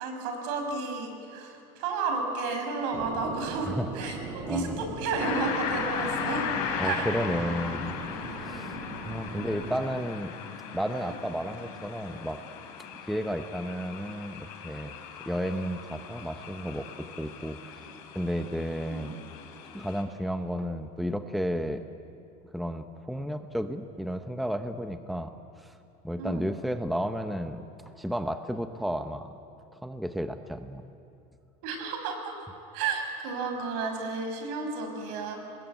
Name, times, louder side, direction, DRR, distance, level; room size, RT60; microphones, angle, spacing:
voice 1, 0.0-4.2 4.5-6.5 6.8-7.1 9.3-9.7 11.0-11.1 18.9-19.2 26.2-26.5 31.6-32.4 32.7-35.4, right 4 dB, 75° right, 4 dB, 5.9 m, -32 dB
sound 1, 2.9-9.8, right 4 dB, 45° right, 5.3 m, -40 dB
voice 2, 4.5-4.8 6.8-7.9 8.4-8.8 9.0-10.3 10.7-12.4 12.8-15.0 15.3-17.9 18.1-19.2 19.7-21.8 22.5-25.8 26.0-27.7 28.0-29.3 29.8-30.8, equal, ahead, 8 dB, 0.8 m, -32 dB
sound 2, 5.2-20.0, left 7 dB, 80° left, 4.6 m, -37 dB
24.0 x 21.0 x 9.2 m, 2.6 s
supercardioid pair, 140°, 19 cm